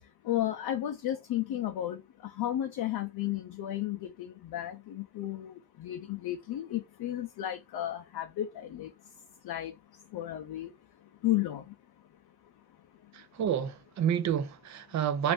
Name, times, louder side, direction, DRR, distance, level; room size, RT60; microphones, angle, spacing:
voice 1, 0.3-2.0 2.4-5.5 5.8-8.9 9.4-9.7 10.1-10.7 11.2-11.6, left 13 dB, 80° left, 0.5 m, -33 dB
voice 2, 13.4-15.3, right 9 dB, 50° right, 0.4 m, -29 dB
2.5 x 2.5 x 3.4 m
wide cardioid pair, 150°, 37 cm